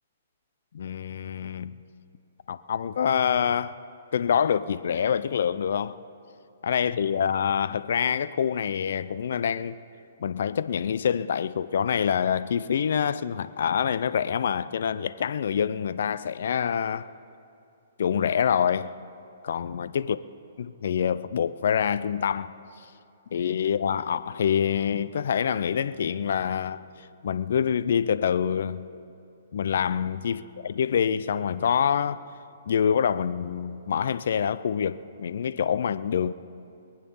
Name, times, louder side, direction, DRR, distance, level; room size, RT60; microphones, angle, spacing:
voice 1, 0.7-1.8 2.5-3.8 4.1-6.0 6.6-9.8 10.2-17.1 18.0-18.9 19.4-20.2 20.6-22.5 23.3-28.9 29.5-32.2 32.7-36.3, left 8 dB, 65° left, 0.5 m, -26 dB
21.5 x 9.0 x 5.5 m
hypercardioid pair, 135°, 0 cm